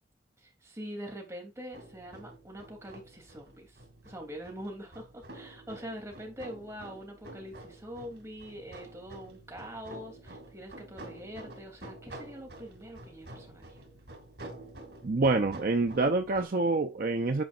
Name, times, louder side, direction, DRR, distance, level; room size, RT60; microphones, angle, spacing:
voice 1, 0.4-3.8 4.0-13.8, equal, 15° right, 3.1 m, -44 dB
sound 1, 1.7-16.5, right 1 dB, 75° right, 2.6 m, -49 dB
voice 2, 15.0-17.4, right 3 dB, 55° right, 0.6 m, -27 dB
9.7 x 5.2 x 2.5 m
head